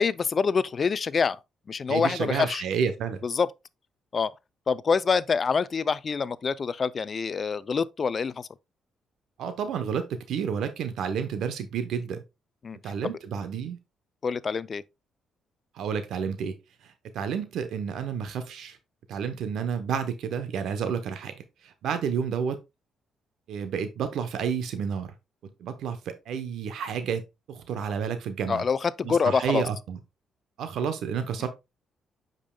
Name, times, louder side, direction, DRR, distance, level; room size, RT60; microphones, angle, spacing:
voice 1, 0.0-1.4 1.7-2.6 3.2-3.5 4.1-4.3 4.7-8.5 12.6-12.8 13.0-13.2 14.2-14.8 28.5-29.6, left 5 dB, 40° left, 0.4 m, -26 dB
voice 2, 1.9-3.2 9.4-12.2 12.8-13.8 15.7-16.6 16.8-18.8 19.1-22.6 23.5-25.1 25.4-27.2 27.5-28.6 29.0-30.0 30.6-31.5, right 7 dB, 75° right, 0.8 m, -30 dB
8.5 x 5.3 x 2.2 m
cardioid pair, 90°, 0 cm